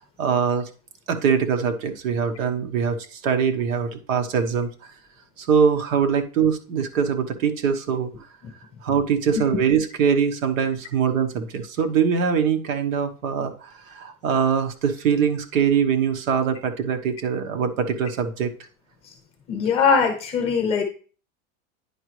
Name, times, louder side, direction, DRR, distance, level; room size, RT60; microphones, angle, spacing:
voice 1, 0.2-0.7 1.1-4.7 5.4-8.1 8.8-18.5, right 7 dB, 75° right, 6 dB, 1.2 m, -23 dB
voice 2, 19.5-20.8, left 6 dB, 15° left, 3 dB, 0.8 m, -21 dB
9.9 x 4.9 x 3.2 m, 0.38 s
supercardioid pair, 180°, 39 cm